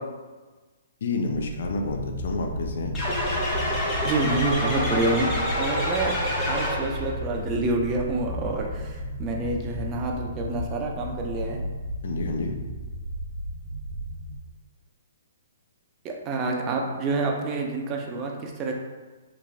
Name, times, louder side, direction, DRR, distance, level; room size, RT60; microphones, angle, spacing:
voice 1, 1.0-3.0 12.0-12.6, left 3 dB, 65° left, 3 dB, 0.4 m, -29 dB
sound 1, 1.2-14.4, equal, 70° right, 0.6 m, -34 dB
sound 2, 2.9-7.1, left 1 dB, 20° left, 0.7 m, -27 dB
voice 2, 4.0-6.2 6.4-11.6 16.0-18.7, right 2 dB, 25° right, 0 dB, 0.4 m, -28 dB
3.1 x 2.5 x 2.4 m, 1.3 s
hypercardioid pair, 150°, 0 cm